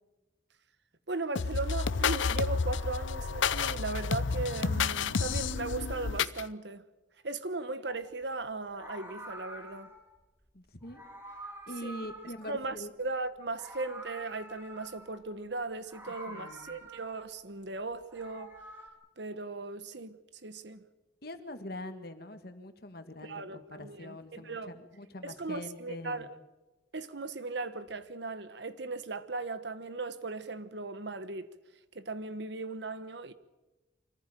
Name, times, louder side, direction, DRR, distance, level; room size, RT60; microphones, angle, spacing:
voice 1, 1.1-6.8 7.2-9.9 11.8-12.0 12.4-18.5 19.2-20.2 20.4-20.8 23.2-24.7 25.2-26.3 26.9-31.5 31.9-33.3, right 3 dB, 65° right, 1.2 m, -37 dB
sound 1, 1.4-6.4, left 5 dB, 80° left, 0.7 m, -30 dB
Meow, 7.8-8.1 8.6-10.1 10.8-13.1 13.4-15.3 15.8-17.4 17.9-18.9, right 1 dB, 10° right, 2.9 m, -47 dB
voice 2, 10.5-11.0 11.7-12.9 16.3-16.8 21.2-26.3, left 1 dB, 50° left, 1.9 m, -43 dB
25.5 x 14.5 x 9.1 m
head